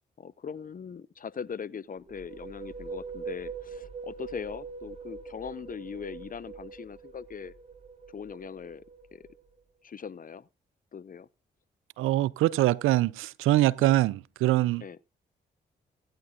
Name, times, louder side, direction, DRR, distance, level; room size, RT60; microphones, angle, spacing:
voice 1, 0.2-7.5 8.1-8.8 9.1-9.3 9.8-10.5 10.9-11.3 13.8-13.9 14.8-15.0, left 6 dB, 40° left, 0.7 m, -40 dB
sound 1, 2.0-9.6, right 5 dB, 30° right, 3.4 m, -43 dB
voice 2, 12.0-14.8, right 16 dB, 80° right, 0.5 m, -24 dB
17.5 x 9.6 x 2.4 m
hypercardioid pair, 45°, 21 cm